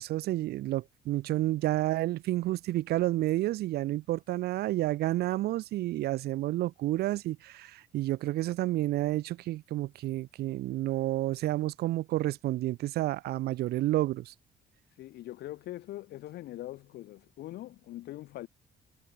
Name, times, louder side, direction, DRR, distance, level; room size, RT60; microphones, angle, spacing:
voice 1, 0.0-14.3, right 16 dB, 70° right, 0.8 m, -30 dB
voice 2, 15.0-18.5, left 15 dB, 75° left, 4.3 m, -42 dB
cardioid pair, 110°, 17 cm